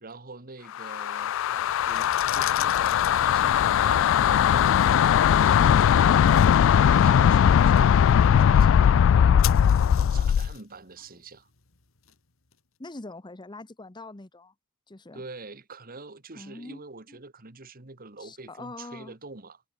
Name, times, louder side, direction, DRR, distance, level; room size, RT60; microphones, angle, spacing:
voice 1, 0.0-3.6 3.8-5.8 6.7-8.0 8.2-9.4 9.9-11.5 15.1-19.6, right 3 dB, 45° right, 2.0 m, -44 dB
sound 1, 0.8-10.5, left 8 dB, 65° left, 0.3 m, -19 dB
sound 2, 1.7-12.6, left 13 dB, 85° left, 2.0 m, -42 dB
voice 2, 12.8-14.5 14.9-15.2 16.3-16.8 17.1-17.2 18.2-19.1, left 2 dB, 20° left, 1.0 m, -42 dB
head